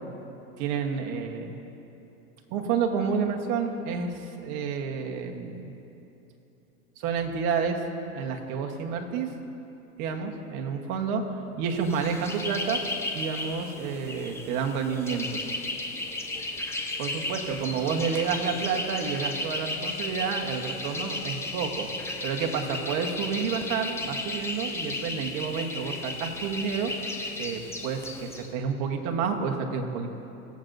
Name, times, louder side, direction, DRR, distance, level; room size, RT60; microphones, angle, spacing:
voice 1, 0.6-1.5 2.5-5.8 7.0-7.8 8.1-9.3 10.0-11.2 11.5-12.8 13.1-15.4 17.0-21.9 22.2-26.9 27.4-30.1, right 6 dB, 45° right, 3 dB, 1.3 m, -30 dB
sound 1, 11.8-28.5, left 2 dB, 5° left, 0.5 m, -34 dB
21.0 x 7.8 x 2.6 m, 3.0 s
supercardioid pair, 130°, 43 cm